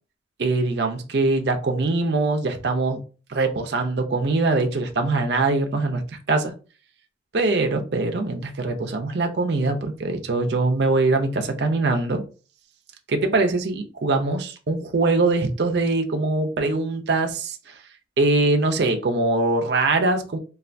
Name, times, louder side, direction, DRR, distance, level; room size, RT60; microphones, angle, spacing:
voice 1, 0.4-3.0 3.3-6.0 6.3-6.5 7.3-12.2 13.1-17.6 18.2-20.4, right 3 dB, 65° right, 5 dB, 0.5 m, -22 dB
3.3 x 2.3 x 2.5 m, 0.35 s
head